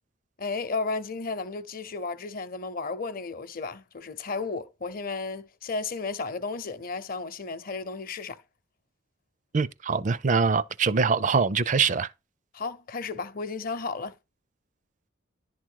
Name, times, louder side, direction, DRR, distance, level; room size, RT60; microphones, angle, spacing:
voice 1, 0.4-8.4 12.5-14.1, left 4 dB, 45° left, 0.7 m, -33 dB
voice 2, 9.5-12.1, right 5 dB, 40° right, 0.4 m, -23 dB
11.0 x 3.7 x 4.6 m
head